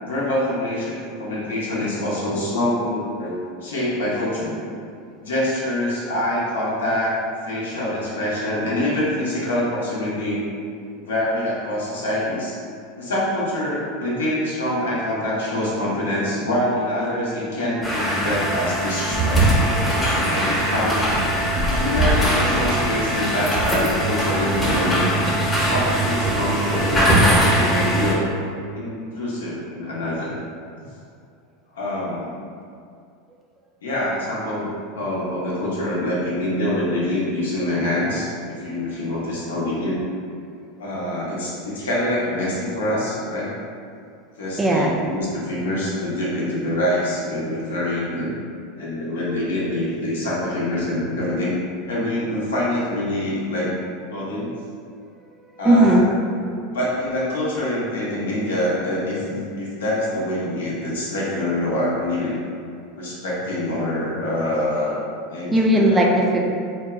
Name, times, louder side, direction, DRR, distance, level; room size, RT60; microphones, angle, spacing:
voice 1, 0.0-4.6 5.2-7.2 7.4-10.4 11.0-12.5 13.0-19.7 20.2-21.3 21.7-25.1 25.7-28.3 28.7-30.3 31.7-32.4 33.8-40.0 40.8-43.5 44.4-48.3 48.8-51.6 51.9-53.7 54.1-54.5 55.6-56.0 56.7-62.3 63.0-65.0 65.3-66.1, left 1 dB, 85° left, -6 dB, 0.6 m, -25 dB
sound 1, 17.8-28.1, right 1 dB, 10° left, 0.7 m, -21 dB
voice 2, 44.6-45.0 55.6-56.1 56.4-56.8 65.5-66.4, right 1 dB, 15° right, 0 dB, 0.3 m, -17 dB
2.7 x 2.1 x 2.3 m, 2.3 s
hypercardioid pair, 90°, 0 cm